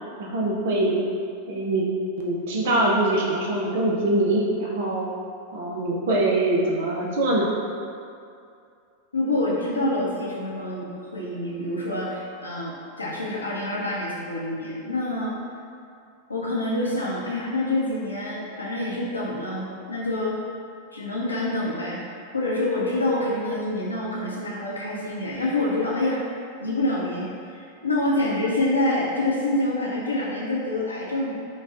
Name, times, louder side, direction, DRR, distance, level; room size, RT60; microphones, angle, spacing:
voice 1, 0.2-1.0 1.5-1.9 2.2-5.1 5.5-7.5, right 2 dB, 55° right, -2 dB, 0.6 m, -23 dB
voice 2, 9.1-15.3 16.3-20.4 20.9-22.0 22.3-26.2 26.6-31.3, left 1 dB, 80° left, -5 dB, 0.7 m, -26 dB
5.3 x 2.3 x 2.5 m, 2.4 s
figure-of-eight pair, 90°, 0 cm